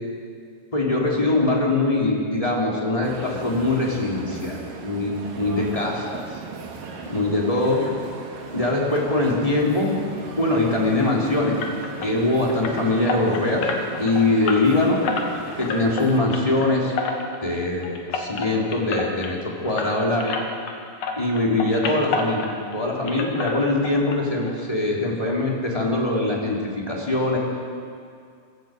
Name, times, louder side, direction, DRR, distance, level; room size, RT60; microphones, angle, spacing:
voice 1, 0.7-6.2 7.1-7.8 8.5-10.0 10.4-11.5 12.0-13.7 14.0-15.0 15.6-16.9 17.4-20.4 21.2-22.4 22.7-26.6 26.9-27.4, left 2 dB, 10° left, -3 dB, 3.2 m, -22 dB
sound 1, 3.0-16.2, right 4 dB, 85° right, 3.6 m, -37 dB
sound 2, 11.6-20.8 21.0-22.8 23.1-24.2 24.4-24.6 25.0-25.1 25.4-25.5, left 4 dB, 75° left, 3.1 m, -30 dB
22.5 x 14.5 x 8.0 m, 2.3 s
omnidirectional pair, 3.8 m